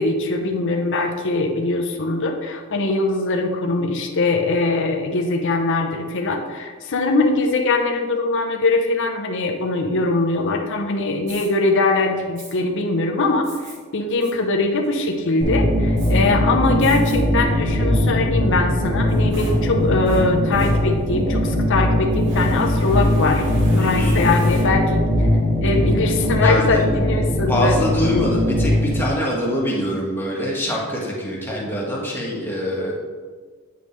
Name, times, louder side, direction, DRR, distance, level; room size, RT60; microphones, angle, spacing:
voice 1, 0.0-23.4 23.7-25.0 25.6-27.7, left 3 dB, 60° left, 2 dB, 0.7 m, -21 dB
Fire, 11.3-11.5 12.4-12.5 13.4-13.8 14.2-14.3 14.8-15.3 16.0-16.1 16.8-17.2 17.7-17.8 18.8-21.3 22.2-25.0, equal, 55° right, 1.9 m, -35 dB
sound 1, 15.4-29.0, left 1 dB, 10° right, 2.1 m, -20 dB
voice 2, 23.8-24.2 26.4-26.8 27.5-32.9, left 1 dB, 10° left, -4 dB, 1.5 m, -24 dB
8.9 x 5.3 x 3.2 m, 1.5 s
head